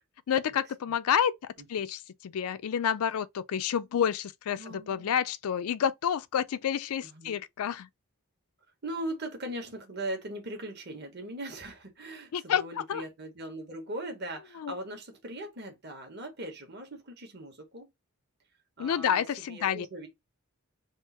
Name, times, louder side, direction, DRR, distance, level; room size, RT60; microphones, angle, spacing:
voice 1, 0.3-7.9 12.3-13.0 14.6-14.7 18.8-19.9, left 8 dB, 80° left, 0.4 m, -29 dB
voice 2, 4.5-5.1 7.0-7.4 8.8-17.9 18.8-20.1, right 1 dB, 50° right, 1.3 m, -40 dB
3.6 x 2.5 x 4.1 m
head